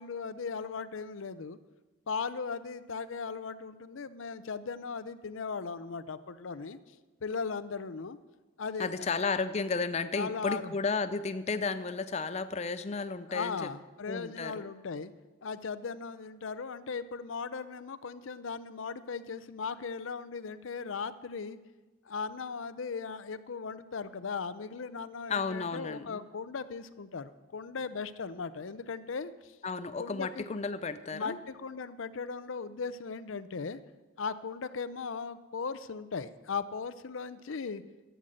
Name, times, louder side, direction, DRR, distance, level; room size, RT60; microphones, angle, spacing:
voice 1, 0.0-1.6 2.1-6.8 7.2-8.2 8.6-9.1 10.1-10.7 13.3-15.1 15.4-21.6 22.1-29.5 30.0-30.5 31.1-33.8 34.2-37.8, left 5 dB, 85° left, 13 dB, 0.6 m, -38 dB
voice 2, 8.8-13.7 14.1-14.7 25.3-26.2 29.6-31.4, left 4 dB, 35° left, 11 dB, 0.5 m, -33 dB
12.5 x 8.1 x 7.6 m, 1.2 s
head